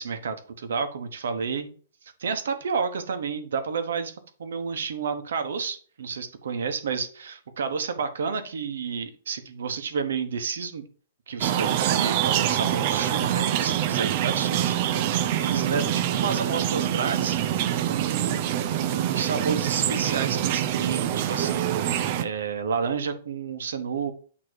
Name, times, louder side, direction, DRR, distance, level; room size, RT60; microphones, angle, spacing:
voice 1, 0.0-1.7 2.0-10.8 11.3-17.4 17.9-24.1, right 5 dB, 75° right, 8 dB, 1.2 m, -31 dB
sound 1, 11.4-22.2, right 11 dB, 30° right, 0.4 m, -25 dB
8.7 x 3.1 x 4.7 m, 0.42 s
hypercardioid pair, 175°, 0 cm